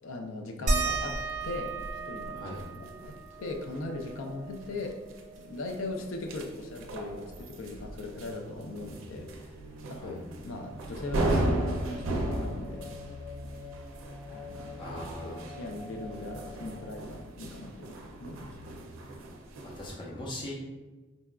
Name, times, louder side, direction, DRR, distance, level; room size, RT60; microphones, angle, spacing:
voice 1, 0.0-1.2 1.4-1.7 2.1-5.0 5.4-9.3 9.9-10.2 10.4-13.0 14.3-18.5, left 2 dB, 80° left, 3 dB, 0.4 m, -39 dB
sound 1, 0.7-5.8 6.1-6.2 6.6-8.3 9.6-9.7 10.4-10.5, right 3 dB, 40° right, 0.6 m, -35 dB
sound 2, 0.9-20.0, right 1 dB, 85° right, 0.4 m, -37 dB
sound 3, 8.0-17.1, left 2 dB, 50° left, 0.9 m, -47 dB
voice 2, 14.8-15.7 19.7-20.5, left 1 dB, 25° left, -4 dB, 0.5 m, -40 dB
3.9 x 2.3 x 2.2 m, 1.2 s
head